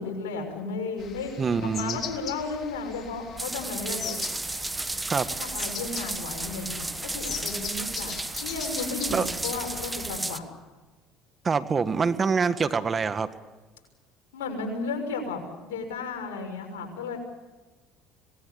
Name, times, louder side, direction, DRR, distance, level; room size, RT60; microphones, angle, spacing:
voice 1, 0.0-4.2 5.4-10.5 14.3-17.2, left 4 dB, 90° left, 3 dB, 6.2 m, -34 dB
sound 1, 1.0-10.2, left 7 dB, 50° left, 3.4 m, -40 dB
voice 2, 1.4-2.0 5.1-5.3 9.1-9.3 11.4-13.3, right 5 dB, 35° right, 11 dB, 1.7 m, -25 dB
sound 2, 3.4-10.4, right 2 dB, 15° right, 1.4 m, -33 dB
26.5 x 19.5 x 8.7 m, 1.2 s
supercardioid pair, 80°, 0 cm